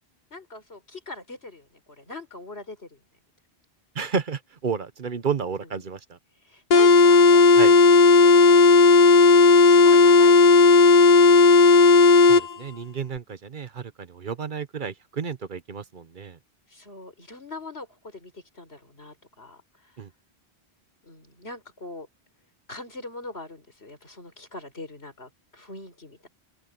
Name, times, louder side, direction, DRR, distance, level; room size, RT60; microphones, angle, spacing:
voice 1, 0.3-3.0 5.6-5.8 6.4-7.7 8.2-10.6 11.0-11.9 16.7-20.0 21.0-22.1 22.7-26.3, left 2 dB, 85° left, 5.3 m, -42 dB
voice 2, 3.9-6.2 7.6-7.7 12.3-16.4 20.0-20.1, right 6 dB, 55° right, 1.0 m, -31 dB
sound 1, 6.7-12.5, left 4 dB, 45° left, 0.8 m, -14 dB
open air
omnidirectional pair, 1.0 m